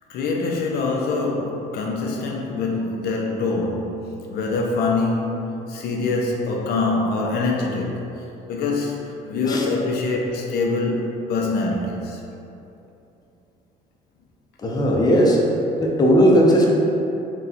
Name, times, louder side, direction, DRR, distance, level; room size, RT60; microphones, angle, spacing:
voice 1, 0.1-8.0 8.5-12.2, left 3 dB, 70° left, 0 dB, 0.5 m, -24 dB
voice 2, 14.6-15.4 15.8-16.7, equal, 25° left, -3 dB, 0.6 m, -16 dB
3.9 x 2.3 x 4.1 m, 2.8 s
cardioid pair, 110°, 17 cm